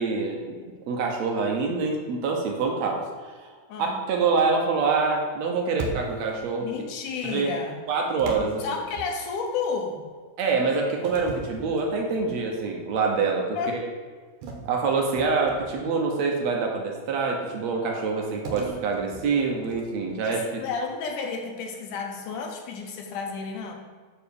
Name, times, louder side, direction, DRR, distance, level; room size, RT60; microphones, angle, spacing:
voice 1, 0.0-3.0 3.3-3.5 4.1-6.7 7.2-7.6 7.9-8.6 10.4-13.9 14.7-20.5, right 4 dB, 65° right, 1 dB, 2.1 m, -26 dB
sound 1, 5.8-6.4 8.2-9.5 11.0-12.4 12.9-13.1 14.4-15.9 18.5-20.1, right 3 dB, 90° right, 2.6 m, -38 dB
voice 2, 6.6-7.8 8.6-10.0 13.6-13.7 20.2-23.7, left 5 dB, 85° left, 2 dB, 2.6 m, -31 dB
6.8 x 4.9 x 6.9 m, 1.5 s
omnidirectional pair, 3.5 m